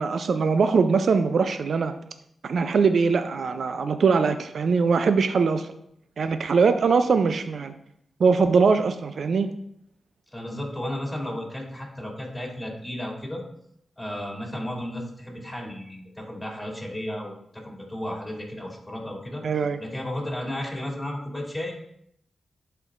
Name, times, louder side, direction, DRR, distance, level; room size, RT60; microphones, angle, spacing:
voice 1, 0.0-2.0 2.4-5.7 6.2-7.7 8.2-9.5 19.4-19.8, right 5 dB, 70° right, 9 dB, 0.4 m, -22 dB
voice 2, 10.3-13.4 14.0-19.4 19.8-21.7, left 1 dB, 10° left, -1 dB, 2.5 m, -33 dB
12.0 x 4.4 x 2.5 m, 0.72 s
cardioid pair, 70°, 0 cm